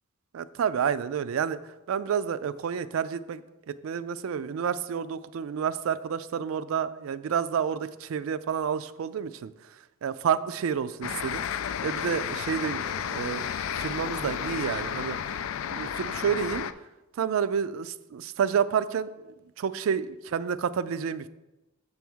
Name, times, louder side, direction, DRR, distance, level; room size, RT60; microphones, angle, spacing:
voice 1, 0.3-3.4 3.7-9.5 10.0-11.4 11.8-12.8 13.1-13.5 13.8-15.4 15.7-16.7 17.2-21.3, right 7 dB, 80° right, 15 dB, 0.3 m, -29 dB
sound 1, 11.0-16.7, left 8 dB, 80° left, 0.3 m, -32 dB
7.5 x 3.5 x 6.1 m, 1.0 s
head